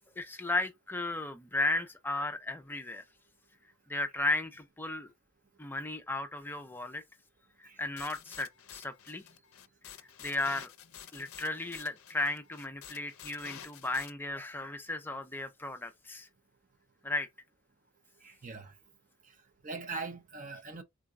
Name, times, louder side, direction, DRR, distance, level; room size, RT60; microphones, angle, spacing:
voice 1, 0.2-3.0 3.9-5.1 5.6-7.0 7.6-9.2 10.2-10.7 11.1-16.3 17.0-17.3, left 2 dB, 10° left, 0.4 m, -35 dB
sound 1, 8.0-14.1, left 9 dB, 70° left, 0.5 m, -50 dB
voice 2, 18.2-18.7 19.6-20.8, right 3 dB, 35° right, 0.7 m, -41 dB
3.9 x 2.2 x 3.6 m
head